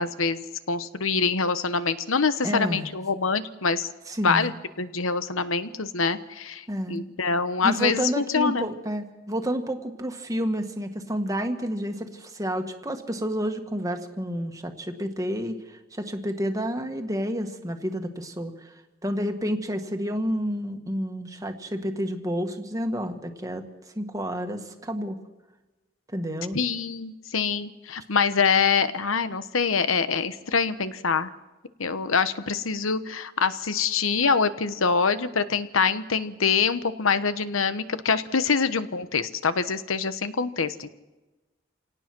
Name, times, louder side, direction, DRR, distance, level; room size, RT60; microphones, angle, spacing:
voice 1, 0.0-3.9 4.2-4.5 4.8-8.6 26.5-31.3 31.8-40.9, left 5 dB, 90° left, 12 dB, 1.1 m, -25 dB
voice 2, 2.4-2.9 4.1-4.5 6.7-7.0 7.6-23.6 24.0-25.2 26.1-26.6, equal, 15° right, 5 dB, 1.6 m, -30 dB
26.5 x 18.0 x 6.1 m, 1.1 s
head